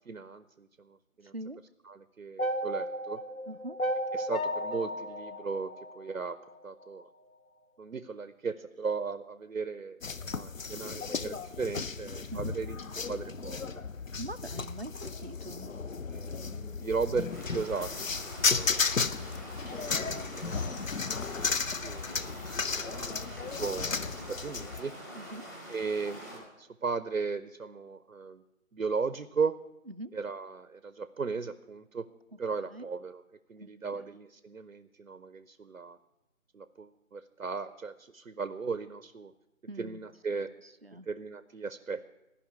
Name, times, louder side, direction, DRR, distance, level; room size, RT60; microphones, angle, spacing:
voice 1, 0.0-1.3 1.8-3.2 4.1-6.4 6.6-7.1 7.8-10.0 10.2-12.8 13.1-13.8 16.1-18.9 19.7-20.6 21.8-24.9 25.7-28.4 28.7-29.5 30.1-32.1 32.4-33.2 33.5-36.0 36.5-39.3 39.8-40.5 41.1-42.0, right 5 dB, 85° right, 13 dB, 0.7 m, -36 dB
sound 1, 2.4-6.6, equal, 90° left, 1.3 m, -34 dB
voice 2, 3.5-3.8 12.3-12.5 14.2-15.7 25.1-25.4 29.9-30.2 32.7-32.9 33.6-34.2 39.7-40.0 40.3-41.1, right 1 dB, 50° right, 13 dB, 0.4 m, -43 dB
sound 2, 10.0-24.8, left 5 dB, 70° left, 0.7 m, -34 dB
sound 3, 17.3-26.4, equal, 15° left, 1.5 m, -45 dB
14.5 x 5.5 x 9.7 m, 0.97 s
figure-of-eight pair, 165°, 41 cm